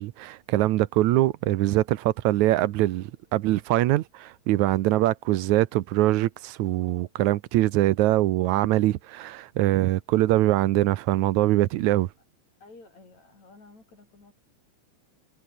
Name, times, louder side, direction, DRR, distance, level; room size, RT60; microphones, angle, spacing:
voice 1, 0.0-12.1, right 16 dB, 80° right, 2.1 m, -23 dB
voice 2, 12.6-14.3, left 3 dB, 65° left, 9.2 m, -52 dB
omnidirectional pair, 3.4 m